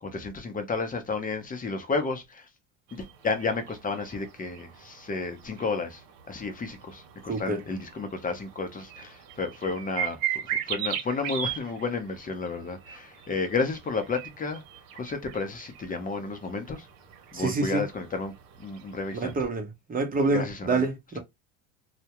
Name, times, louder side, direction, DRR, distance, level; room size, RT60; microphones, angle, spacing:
voice 1, 0.0-2.5 2.9-6.0 6.3-14.6 14.9-16.8 17.3-18.3 18.6-19.3 20.3-20.9, left 4 dB, 20° left, 0.6 m, -32 dB
sound 1, 2.9-19.4, right 10 dB, 80° right, 0.7 m, -39 dB
voice 2, 7.3-7.6 17.3-17.8 19.1-21.2, right 3 dB, 20° right, 0.7 m, -27 dB
2.2 x 2.1 x 2.8 m
supercardioid pair, 95°, 39 cm